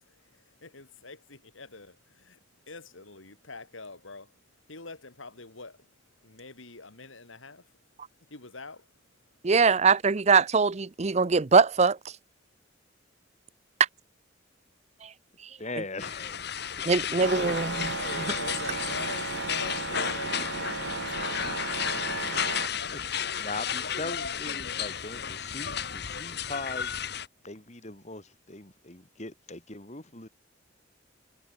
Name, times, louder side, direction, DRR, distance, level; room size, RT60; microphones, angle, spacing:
voice 1, 0.1-2.4 2.7-4.3 4.7-5.9 6.2-7.7 8.3-8.9 16.2-16.7 17.3-23.4, left 3 dB, 90° left, 3.6 m, -45 dB
voice 2, 9.4-12.0 16.9-17.7, right 5 dB, 35° right, 0.6 m, -22 dB
voice 3, 15.6-16.4 22.1-22.4 22.9-23.0 23.4-27.0 27.4-30.3, left 3 dB, 35° left, 2.9 m, -40 dB
sound 1, 16.0-27.3, left 8 dB, 55° left, 2.2 m, -33 dB
sound 2, 17.2-22.7, right 4 dB, 70° right, 2.3 m, -34 dB
head